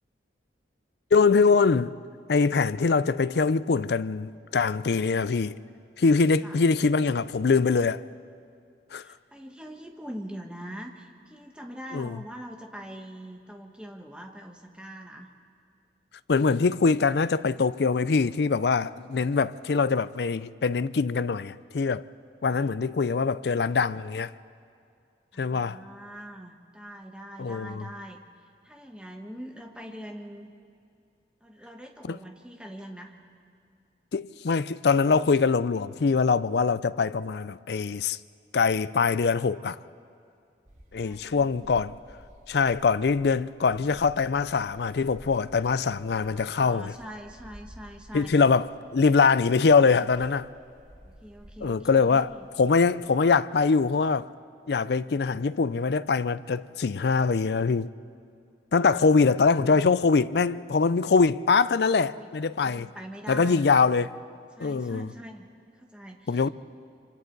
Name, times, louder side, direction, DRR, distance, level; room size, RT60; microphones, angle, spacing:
voice 1, 1.1-2.0 2.3-5.6 6.0-8.0 8.9-9.0 11.9-12.2 16.3-22.0 22.4-24.3 25.4-25.8 27.4-27.8 32.1-32.2 34.1-38.2 38.5-39.8 40.9-42.0 42.5-46.9 48.1-50.5 51.6-52.3 52.6-54.3 54.7-57.9 58.7-62.9 63.3-64.1 64.6-65.1 66.3-66.5, left 4 dB, 65° left, 0.5 m, -23 dB
voice 2, 9.0-15.3 25.3-30.5 31.4-33.2 41.0-41.7 46.0-48.3 49.7-50.1 51.0-52.5 61.8-62.3 62.6-63.6 64.5-66.5, equal, 5° right, 1.4 m, -43 dB
sound 1, 40.7-53.4, equal, 40° right, 2.0 m, -52 dB
26.5 x 25.5 x 4.0 m
head